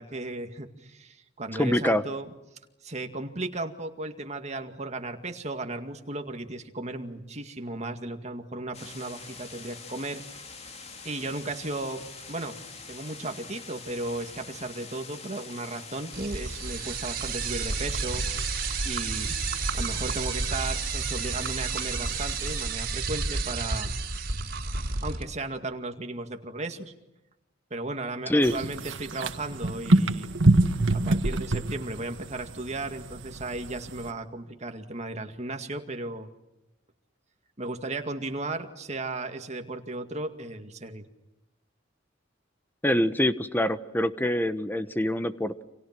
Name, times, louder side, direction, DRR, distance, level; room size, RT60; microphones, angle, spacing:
voice 1, 0.0-2.3 2.8-10.2 11.0-12.6 12.9-18.5 18.9-19.4 19.7-23.9 25.0-26.9 27.7-30.3 30.9-36.3 37.6-41.0, right 2 dB, 35° right, 6 dB, 2.2 m, -35 dB
voice 2, 1.6-2.0 28.3-28.5 42.8-45.6, left 1 dB, 10° left, 12 dB, 1.1 m, -25 dB
sound 1, 8.7-22.7, left 4 dB, 35° left, 3.0 m, -44 dB
sound 2, 16.1-25.2, right 4 dB, 55° right, 4.9 m, -31 dB
sound 3, 28.4-34.1, right 2 dB, 75° right, 1.7 m, -26 dB
29.5 x 27.0 x 6.1 m, 0.97 s
head